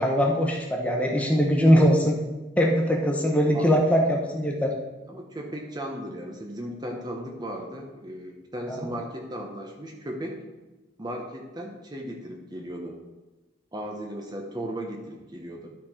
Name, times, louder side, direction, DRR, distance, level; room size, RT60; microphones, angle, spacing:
voice 1, 0.0-2.2 2.6-4.7 8.7-8.8, equal, 5° left, 0 dB, 1.0 m, -21 dB
voice 2, 5.1-10.3 11.0-13.0 13.7-15.7, right 1 dB, 20° right, 1 dB, 0.8 m, -36 dB
12.0 x 4.2 x 4.4 m, 1.1 s
head